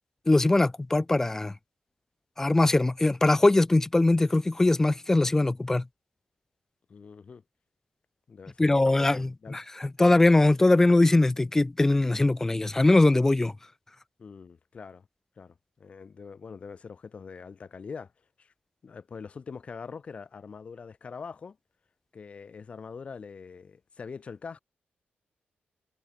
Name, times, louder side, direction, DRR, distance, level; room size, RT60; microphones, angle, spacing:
voice 1, 0.3-1.5 2.4-5.8 8.6-13.5, left 2 dB, 15° left, 0.4 m, -21 dB
voice 2, 6.9-7.4 8.3-9.6 14.2-15.1 15.4-18.1 18.4-18.5 18.8-21.6 22.1-24.6, left 5 dB, 35° left, 3.7 m, -43 dB
wide cardioid pair, 175°, 4 cm